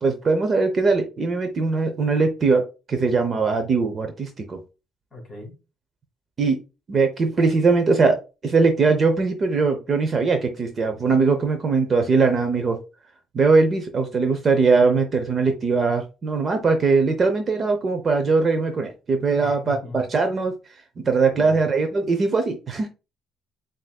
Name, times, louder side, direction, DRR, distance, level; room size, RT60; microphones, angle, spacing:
voice 1, 0.0-2.6 2.9-4.6 6.4-6.6 6.9-8.2 8.4-12.8 13.3-20.5 21.1-22.9, right 4 dB, 30° right, 0.5 m, -20 dB
voice 2, 5.1-5.5 19.4-20.0 21.3-21.6, left 2 dB, 20° left, 2.5 m, -38 dB
7.6 x 2.6 x 2.2 m
cardioid pair, 160°, 0 cm